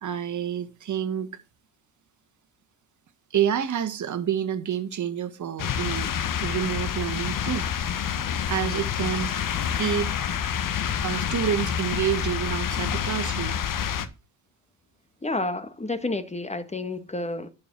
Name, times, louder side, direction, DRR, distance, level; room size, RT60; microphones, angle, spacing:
voice 1, 0.0-1.3 3.3-6.1 6.4-7.9 8.5-9.3 9.7-10.1 11.0-13.6, right 9 dB, 45° right, 1.8 m, -28 dB
sound 1, 5.6-14.1, left 8 dB, 50° left, 1.4 m, -28 dB
voice 2, 15.2-17.5, left 2 dB, 15° left, 1.7 m, -30 dB
11.5 x 5.1 x 6.2 m
hypercardioid pair, 65°, 42 cm